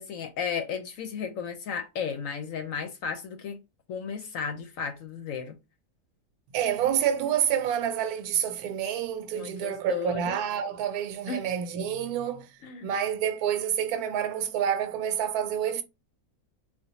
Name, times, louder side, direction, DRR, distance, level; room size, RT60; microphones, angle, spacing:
voice 1, 0.0-3.6 3.9-5.6 9.3-10.3 11.3-11.5 12.6-12.9, left 6 dB, 70° left, 0.9 m, -34 dB
voice 2, 6.5-12.5 12.8-15.8, right 9 dB, 80° right, 1.1 m, -28 dB
3.5 x 2.4 x 2.9 m
omnidirectional pair, 1.6 m